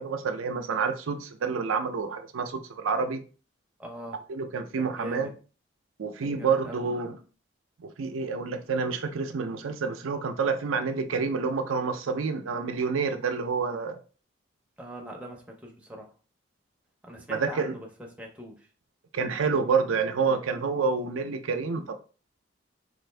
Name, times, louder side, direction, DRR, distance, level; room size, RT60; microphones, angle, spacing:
voice 1, 0.0-3.2 4.3-5.3 6.0-7.2 7.8-14.0 17.3-17.7 19.1-21.9, right 5 dB, 90° right, 0.5 m, -28 dB
voice 2, 3.8-4.2 4.8-5.3 6.2-6.9 14.8-16.1 17.0-17.9 18.2-18.6, equal, 5° right, 0.6 m, -41 dB
4.0 x 2.5 x 3.2 m
head